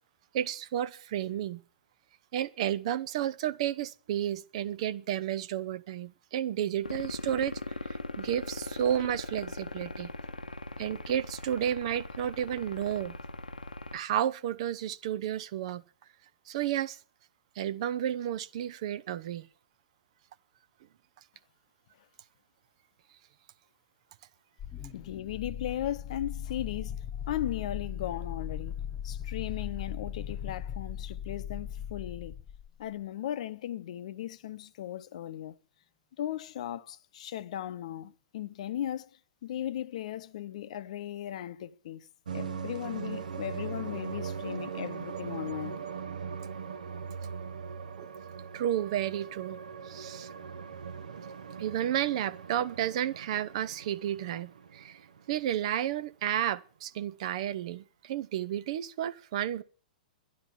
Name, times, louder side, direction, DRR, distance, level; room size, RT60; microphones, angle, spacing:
voice 1, 0.3-1.6 2.3-7.6 8.2-10.1 10.8-13.1 13.9-15.8 16.5-17.0 17.6-19.5 48.0-48.1 48.5-49.6 49.8-50.3 51.6-55.0 55.3-59.6, right 11 dB, 45° right, 0.7 m, -32 dB
sound 1, 6.8-14.0, left 3 dB, 80° left, 0.9 m, -40 dB
sound 2, 24.6-32.8, left 9 dB, 20° left, 1.1 m, -38 dB
voice 2, 24.9-27.0 27.3-32.3 32.8-35.6 36.2-39.1 39.4-42.1 42.3-45.9, left 11 dB, 50° left, 0.8 m, -37 dB
sound 3, 42.3-55.6, right 6 dB, 65° right, 1.0 m, -40 dB
12.0 x 11.0 x 7.2 m
figure-of-eight pair, 105°, 5 cm